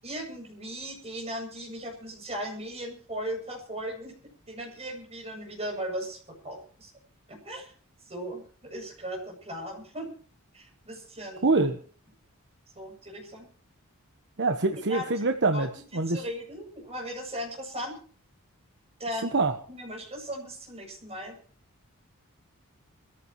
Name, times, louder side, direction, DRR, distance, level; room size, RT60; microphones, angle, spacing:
voice 1, 0.0-4.1 4.5-6.9 7.3-7.7 8.1-10.1 10.5-11.5 12.8-13.5 14.7-15.2 15.5-15.7 15.9-18.0 19.0-19.4 19.7-21.4, equal, 30° right, 1 dB, 7.9 m, -37 dB
voice 2, 11.4-11.8 14.4-16.2 19.3-19.5, right 3 dB, 55° right, 6 dB, 1.2 m, -25 dB
27.0 x 15.0 x 3.1 m, 0.43 s
head